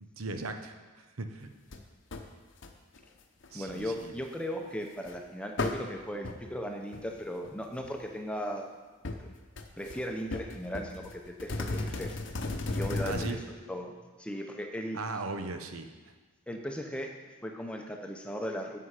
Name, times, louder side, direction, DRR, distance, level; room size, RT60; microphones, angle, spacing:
voice 1, 0.2-1.5 3.5-4.1 13.0-13.4 14.9-15.9, right 3 dB, 85° right, 7 dB, 0.9 m, -38 dB
sound 1, 1.7-1.8 2.1-2.3 2.6-3.0 3.4-4.0 5.1-5.2 5.6-5.8 6.2-6.4 6.9-7.2 7.4-7.5 7.8-8.2 9.0-9.2 9.6-10.0 10.3-13.3, left 2 dB, 60° left, 0.8 m, -35 dB
voice 2, 3.5-8.6 9.2-9.3 9.8-12.2 12.7-13.4 13.7-13.9 14.2-15.0 16.5-17.1 17.4-18.8, equal, 5° left, 3 dB, 0.7 m, -37 dB
11.5 x 7.7 x 4.9 m, 1.3 s
head